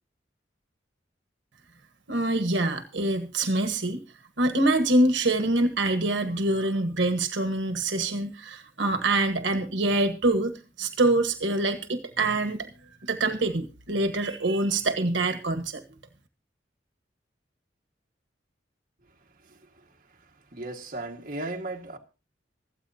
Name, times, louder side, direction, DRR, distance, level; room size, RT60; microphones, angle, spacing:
voice 1, 2.1-4.0 4.4-10.5 10.8-12.7 13.0-15.8, right 2 dB, 80° right, 1.4 m, -25 dB
voice 2, 20.5-22.0, right 2 dB, 50° right, 1.8 m, -35 dB
25.5 x 8.6 x 2.7 m
head